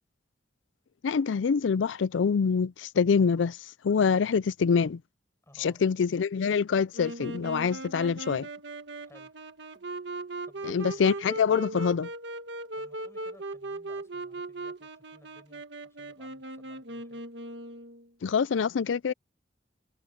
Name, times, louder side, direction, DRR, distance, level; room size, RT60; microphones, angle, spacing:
voice 1, 1.0-3.6 3.8-5.0 5.6-8.5 10.6-12.1 18.2-19.1, left 6 dB, 85° left, 0.4 m, -25 dB
voice 2, 5.4-5.8 9.0-9.3 10.4-11.1 12.8-17.2, left 1 dB, 15° left, 5.2 m, -59 dB
Wind instrument woodwind instrument, 6.9-18.1, right 2 dB, 70° right, 1.7 m, -39 dB
head